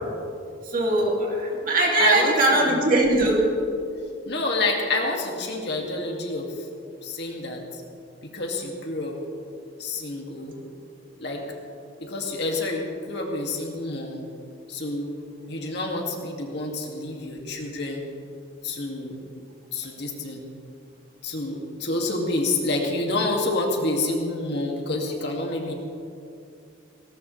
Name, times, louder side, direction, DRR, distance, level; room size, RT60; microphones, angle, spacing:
voice 1, 0.7-3.5, right 2 dB, 40° right, -2 dB, 2.6 m, -21 dB
voice 2, 2.0-2.8 4.3-6.5 7.0-7.6 8.2-9.2 9.8-10.6 11.2-11.4 12.0-14.2 14.7-15.1 15.5-18.0 18.6-19.2 19.7-20.4 21.2-25.7, left 2 dB, 55° left, 0 dB, 2.3 m, -28 dB
19.0 x 18.5 x 3.3 m, 2.5 s
head